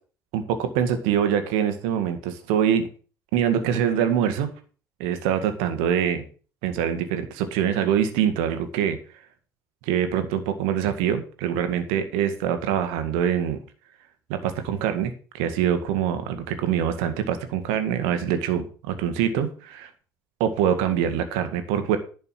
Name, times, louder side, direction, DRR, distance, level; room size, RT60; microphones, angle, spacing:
voice 1, 0.3-2.9 3.3-4.5 5.0-6.2 6.6-9.0 9.8-13.6 14.3-19.9 20.4-22.0, right 9 dB, 65° right, 9 dB, 1.8 m, -24 dB
11.0 x 5.3 x 7.7 m, 0.38 s
figure-of-eight pair, 55°, 11 cm